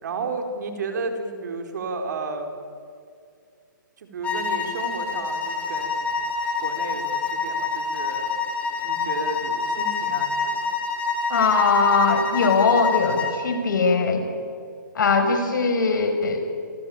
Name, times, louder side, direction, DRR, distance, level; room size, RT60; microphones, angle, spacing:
voice 1, 0.0-2.6 4.0-6.1 6.6-8.3 8.8-10.7, right 3 dB, 60° right, 5 dB, 4.4 m, -32 dB
sound 1, 4.2-13.4, left 5 dB, 10° left, 4.0 m, -27 dB
voice 2, 11.3-14.3 14.9-16.5, left 4 dB, 65° left, 6 dB, 5.8 m, -20 dB
27.5 x 21.5 x 9.0 m, 2.3 s
hypercardioid pair, 155°, 11 cm